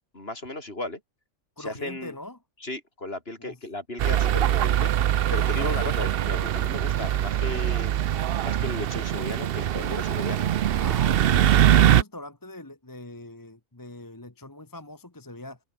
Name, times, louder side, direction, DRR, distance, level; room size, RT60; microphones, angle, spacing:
voice 1, 0.1-1.0 1.6-2.2 2.6-4.9 5.3-8.0 8.4-10.6 11.8-11.9, left 2 dB, 50° left, 5.1 m, -35 dB
voice 2, 1.6-2.4 3.4-3.6 5.3-5.7 10.7-15.6, left 1 dB, 15° left, 1.3 m, -42 dB
sound 1, 4.0-12.0, right 11 dB, 60° right, 0.7 m, -22 dB
omnidirectional pair, 1.3 m